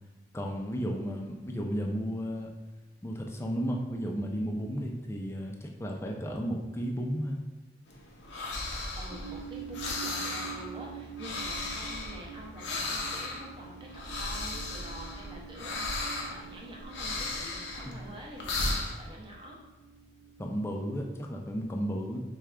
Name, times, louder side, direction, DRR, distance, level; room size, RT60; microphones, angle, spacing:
voice 1, 0.3-2.5 3.0-7.4 17.9-18.0 20.4-22.2, equal, 15° left, 1 dB, 0.4 m, -33 dB
sound 1, 7.9-19.1, left 2 dB, 80° left, 0.6 m, -36 dB
voice 2, 8.9-19.6, right 1 dB, 30° right, -2 dB, 0.7 m, -47 dB
Gong Multiple Slow Beats, 9.1-20.4, right 7 dB, 70° right, 1.0 m, -46 dB
4.8 x 2.3 x 3.3 m, 1.1 s
head